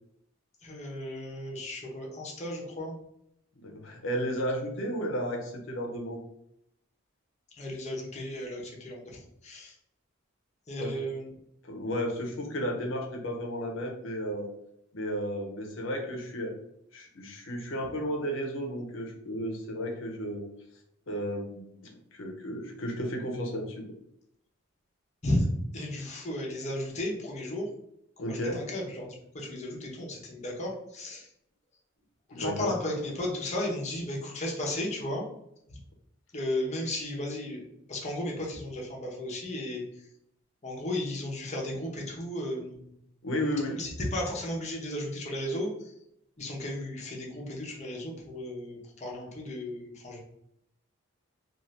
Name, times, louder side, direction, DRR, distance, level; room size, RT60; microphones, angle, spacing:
voice 1, 0.6-2.9 7.6-9.7 10.7-11.3 25.2-25.5 25.7-27.7 28.3-31.3 32.3-35.3 35.7-35.8 36.3-39.8 40.6-42.9 43.8-45.7 46.4-50.2, left 1 dB, 35° left, -2 dB, 0.7 m, -34 dB
voice 2, 3.6-6.2 10.8-11.0 11.6-14.5 14.9-16.6 16.9-20.5 21.1-23.8 28.2-28.6 32.3-32.8 43.2-43.8, equal, 70° left, 2 dB, 0.7 m, -33 dB
2.6 x 2.4 x 3.2 m, 0.76 s
head